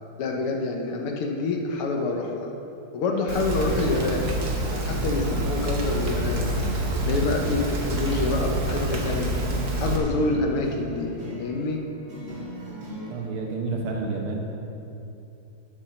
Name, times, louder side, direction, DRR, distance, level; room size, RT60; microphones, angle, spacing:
voice 1, 0.2-2.5 2.9-4.3 4.7-6.5 7.0-9.3 9.7-11.1 11.4-11.8, left 3 dB, 80° left, 2 dB, 1.9 m, -27 dB
Rain, 3.3-10.0, right 2 dB, 45° right, 1.3 m, -27 dB
sound 1, 3.6-13.1, left 2 dB, 30° right, 2.4 m, -38 dB
voice 2, 13.1-14.4, right 3 dB, 70° right, 0 dB, 2.0 m, -29 dB
8.0 x 7.9 x 6.3 m, 2.8 s
omnidirectional pair, 2.4 m